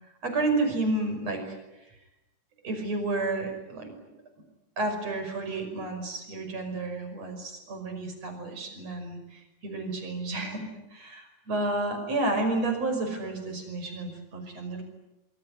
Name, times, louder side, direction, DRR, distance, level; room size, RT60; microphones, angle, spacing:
voice 1, 0.2-1.6 2.6-3.9 4.8-14.8, right 2 dB, 60° right, 5 dB, 6.7 m, -31 dB
25.0 x 24.0 x 9.8 m, 0.97 s
omnidirectional pair, 3.3 m